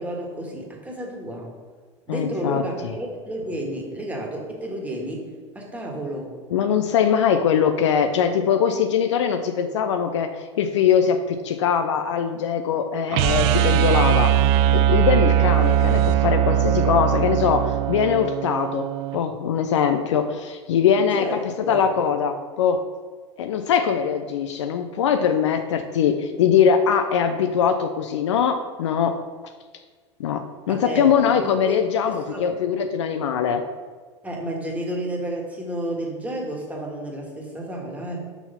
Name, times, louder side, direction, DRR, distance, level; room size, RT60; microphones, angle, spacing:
voice 1, 0.0-1.5 2.1-5.3 5.6-6.4 21.0-21.4 21.6-21.9 30.7-31.1 31.4-31.8 32.1-32.5 34.2-38.3, right 1 dB, 10° right, -1 dB, 1.7 m, -31 dB
voice 2, 2.1-2.9 6.5-10.3 10.6-14.3 14.7-18.9 19.1-21.4 21.7-22.8 23.4-29.2 30.2-33.6, left 7 dB, 70° left, 7 dB, 0.5 m, -22 dB
sound 1, 13.1-19.2, right 11 dB, 55° right, 0.4 m, -20 dB
5.8 x 4.1 x 5.6 m, 1.5 s
figure-of-eight pair, 85°, 16 cm